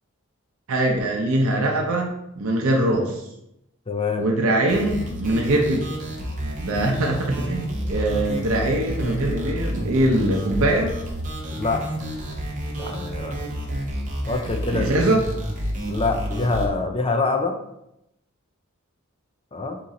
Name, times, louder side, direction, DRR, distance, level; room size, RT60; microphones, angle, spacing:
voice 1, 0.7-3.3 4.2-5.8 6.6-10.9 14.7-15.2, right 1 dB, 85° right, 1 dB, 0.6 m, -22 dB
voice 2, 3.9-4.2 11.5-11.8 12.8-13.4 14.3-15.0 15.9-17.6 19.5-19.8, left 3 dB, 25° left, 5 dB, 0.4 m, -25 dB
sound 1, 4.7-16.7, equal, 35° right, 0.8 m, -30 dB
4.0 x 2.9 x 3.7 m, 0.83 s
head